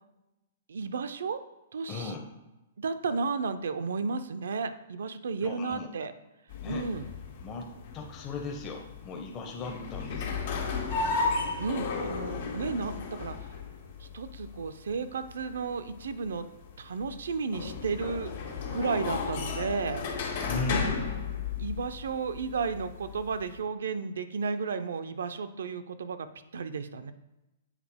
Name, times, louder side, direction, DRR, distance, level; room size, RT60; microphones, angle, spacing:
voice 1, 0.7-1.4 1.7-2.1 2.8-6.1 6.7-7.1 11.6-13.5 14.0-16.5 16.8-20.0 21.6-26.3 26.5-27.1, right 4 dB, 80° right, 10 dB, 0.5 m, -33 dB
voice 2, 1.9-2.3 5.4-5.9 6.6-6.9 7.4-10.7 20.4-21.0, left 3 dB, 25° left, 1 dB, 0.7 m, -37 dB
sound 1, 6.5-23.6, left 4 dB, 60° left, 1.5 m, -35 dB
7.2 x 4.3 x 3.5 m, 0.98 s
hypercardioid pair, 140°, 0 cm